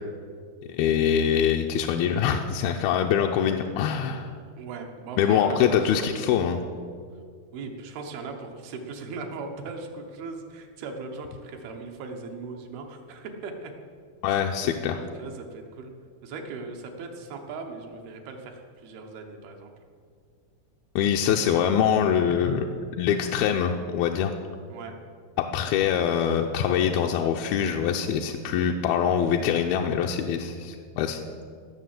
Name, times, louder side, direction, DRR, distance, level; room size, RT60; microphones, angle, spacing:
voice 1, 0.7-4.3 5.2-6.6 14.2-15.0 21.0-24.3 25.4-31.2, left 8 dB, 85° left, 2 dB, 2.5 m, -24 dB
voice 2, 4.6-6.3 7.5-13.7 14.3-15.9 16.2-19.7 24.7-25.0, right 3 dB, 90° right, 3 dB, 3.2 m, -39 dB
16.5 x 6.6 x 7.8 m, 2.1 s
omnidirectional pair, 4.3 m